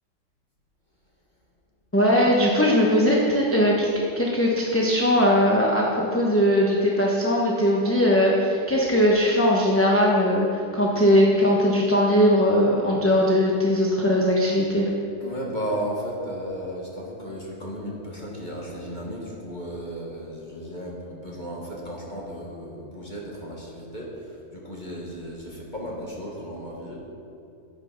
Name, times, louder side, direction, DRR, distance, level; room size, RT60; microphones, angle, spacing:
voice 1, 1.9-3.9 4.2-14.9, equal, 10° left, -4 dB, 1.0 m, -20 dB
voice 2, 15.2-27.0, equal, 35° left, -3 dB, 1.7 m, -34 dB
9.8 x 7.9 x 5.8 m, 2.6 s
omnidirectional pair, 1.4 m